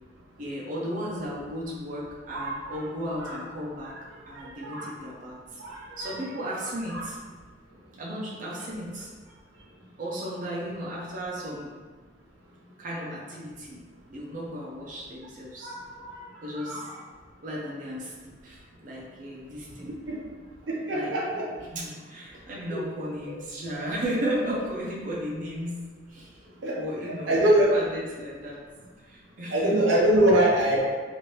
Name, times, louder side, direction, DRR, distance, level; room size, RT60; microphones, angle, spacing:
voice 1, 0.4-3.9 4.3-5.6 6.0-7.2 7.9-9.1 10.0-11.7 12.8-13.8 14.1-15.8 16.4-16.8 17.4-19.9 20.9-21.1 21.7-25.8 26.1-26.4 26.8-28.6 29.0-30.2, equal, 45° right, -5 dB, 0.5 m, -35 dB
voice 2, 20.7-21.4 22.7-22.8 26.6-26.8 27.3-27.7 29.5-30.9, right 1 dB, 90° right, -4 dB, 0.7 m, -23 dB
3.0 x 2.5 x 2.9 m, 1.5 s
head